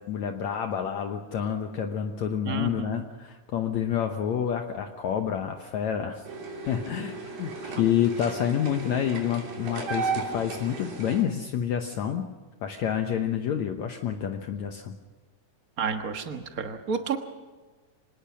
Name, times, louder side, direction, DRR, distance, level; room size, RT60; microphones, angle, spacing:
voice 1, 0.0-6.3 6.7-12.2 12.6-15.0, left 9 dB, 65° left, 5 dB, 2.0 m, -28 dB
voice 2, 2.4-3.0 15.8-17.2, right 5 dB, 70° right, 6 dB, 0.8 m, -31 dB
sound 1, 6.2-11.2, right 4 dB, 85° right, 5.2 m, -35 dB
26.0 x 19.0 x 6.2 m, 1.3 s
omnidirectional pair, 3.9 m